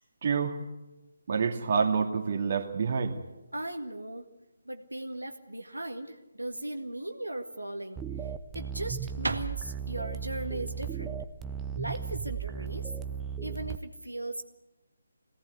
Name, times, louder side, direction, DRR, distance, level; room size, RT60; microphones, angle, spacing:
voice 1, 0.2-0.6 1.3-3.2, right 5 dB, 45° right, 3 dB, 2.3 m, -27 dB
voice 2, 3.5-4.2 4.6-8.0 8.5-11.2 11.8-12.9 13.4-14.4, right 1 dB, 90° right, 4 dB, 1.8 m, -37 dB
sound 1, 7.5-13.0, right 2 dB, 75° right, 1.7 m, -40 dB
sound 2, 8.0-13.8, right 7 dB, 10° right, 0.8 m, -36 dB
22.0 x 17.5 x 8.2 m, 1.1 s
figure-of-eight pair, 150°, 0 cm